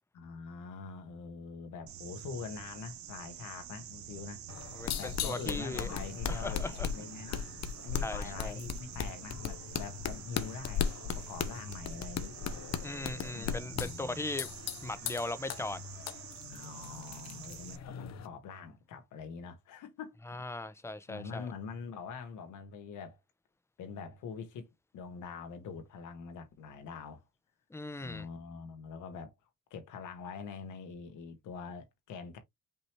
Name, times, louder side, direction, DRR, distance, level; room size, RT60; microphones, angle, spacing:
voice 1, 0.1-4.5 5.0-7.4 7.8-12.4 13.3-14.2 16.5-20.2 21.1-23.2 23.8-27.2 28.0-29.3 29.7-32.4, left 5 dB, 80° left, 1.6 m, -44 dB
sound 1, 1.9-17.8, right 11 dB, 70° right, 0.8 m, -48 dB
sound 2, 4.5-18.3, left 7 dB, 60° left, 0.8 m, -38 dB
voice 2, 4.7-5.9 6.3-6.9 8.0-8.6 12.8-14.5 14.8-15.8 20.3-21.5 27.7-28.3, left 2 dB, 10° left, 0.8 m, -38 dB
5.4 x 2.9 x 3.3 m
cardioid pair, 90°, 30 cm